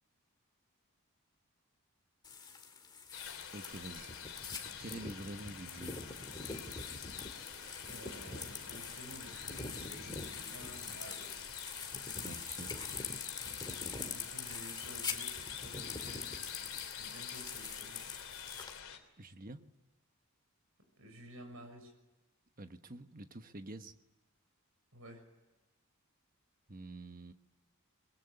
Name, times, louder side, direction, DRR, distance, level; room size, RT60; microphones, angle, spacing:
sound 1, 2.2-18.8, left 5 dB, 20° left, 2.2 m, -44 dB
sound 2, 3.1-19.0, left 8 dB, 65° left, 3.1 m, -48 dB
voice 1, 3.5-4.1 4.8-6.0 12.2-12.7 19.2-19.6 22.6-23.9 26.7-27.3, right 2 dB, 40° right, 8 dB, 1.2 m, -47 dB
voice 2, 7.9-11.5 13.8-18.0 21.0-21.9 24.9-25.2, right 1 dB, 70° right, 5 dB, 6.3 m, -53 dB
23.5 x 22.0 x 9.9 m, 1.0 s
head